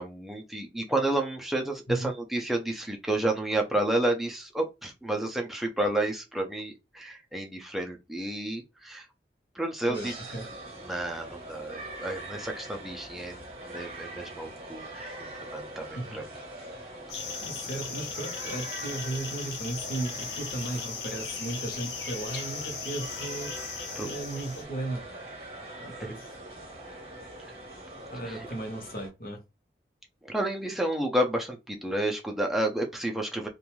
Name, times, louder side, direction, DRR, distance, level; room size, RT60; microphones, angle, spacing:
voice 1, 0.0-9.1 9.5-10.2 10.8-15.1 15.5-16.2 24.0-24.2 28.2-28.4 30.2-33.5, right 1 dB, ahead, 0.4 m, -30 dB
voice 2, 9.9-10.4 15.9-16.2 17.4-23.7 24.0-25.0 25.8-26.4 28.1-29.4, right 2 dB, 55° left, 0.8 m, -36 dB
sound 1, 9.9-29.1, right 1 dB, 35° right, 0.8 m, -43 dB
sound 2, 17.1-24.6, left 5 dB, 85° left, 0.7 m, -38 dB
2.5 x 2.2 x 3.0 m
head